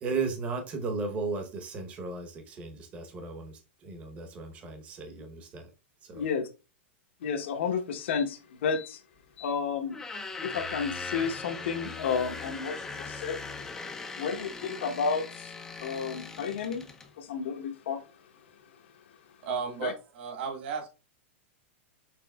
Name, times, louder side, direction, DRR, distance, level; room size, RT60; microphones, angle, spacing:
voice 1, 0.0-5.7 6.0-6.2, right 4 dB, 20° right, 0.9 m, -35 dB
voice 2, 7.2-9.0 9.4-10.0 10.4-13.4 14.2-15.5 15.8-16.9 17.2-18.0 19.8-19.9, left 6 dB, 65° left, 0.9 m, -31 dB
sound 1, 9.9-17.1, left 4 dB, 5° left, 0.4 m, -40 dB
voice 3, 19.4-20.9, right 6 dB, 55° right, 1.8 m, -34 dB
6.0 x 3.7 x 2.3 m
supercardioid pair, 170°, 7 cm